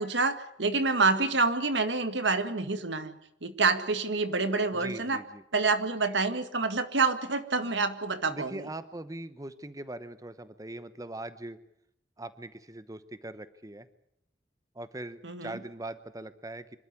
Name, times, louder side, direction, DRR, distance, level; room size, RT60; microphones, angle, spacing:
voice 1, 0.0-3.2 3.4-5.2 5.5-8.7 15.2-15.6, right 4 dB, 90° right, 10 dB, 1.9 m, -27 dB
voice 2, 4.7-5.4 8.3-11.6 12.2-13.9 14.7-16.8, right 2 dB, 20° right, 13 dB, 0.9 m, -41 dB
26.0 x 12.5 x 9.7 m, 0.77 s
head